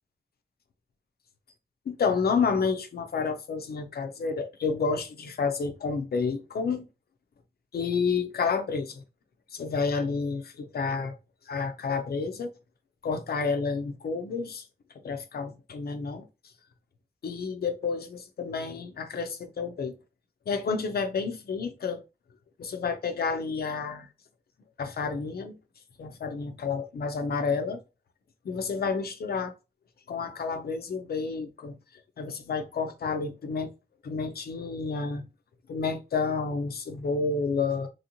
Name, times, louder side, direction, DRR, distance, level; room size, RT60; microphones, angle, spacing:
voice 1, 1.9-6.9 7.7-9.0 9.5-11.1 11.5-12.5 13.0-14.7 15.0-16.3 17.2-20.0 20.5-22.0 22.6-24.1 24.8-25.6 26.0-27.8 28.4-29.5 30.1-31.8 32.2-33.7 34.0-35.2 35.7-37.9, left 5 dB, 85° left, 0.5 m, -30 dB
3.1 x 2.9 x 2.5 m
wide cardioid pair, 65°, 16 cm